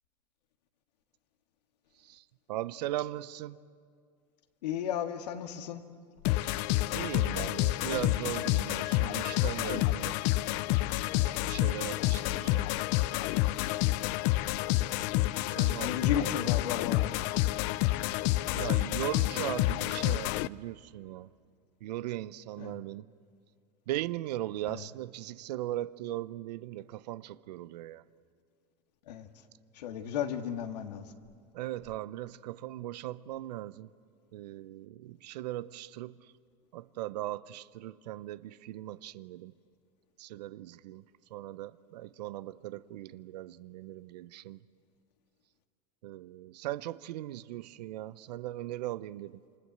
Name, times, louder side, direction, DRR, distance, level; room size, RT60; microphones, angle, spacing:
voice 1, 2.5-3.6 6.9-10.2 11.4-12.7 15.5-16.5 18.5-21.3 21.8-23.1 23.9-28.0 31.5-33.9 34.3-36.2 36.7-39.5 40.2-41.0 41.3-44.6 46.0-49.4, right 14 dB, 80° right, 0.8 m, -38 dB
voice 2, 4.6-5.8 12.0-12.3 15.8-17.2 22.6-22.8 24.7-24.9 29.1-29.3 29.7-31.1, left 9 dB, 80° left, 1.8 m, -34 dB
sound 1, 6.2-20.5, left 18 dB, 60° left, 0.6 m, -29 dB
28.0 x 25.0 x 8.0 m
hypercardioid pair, 100°, 21 cm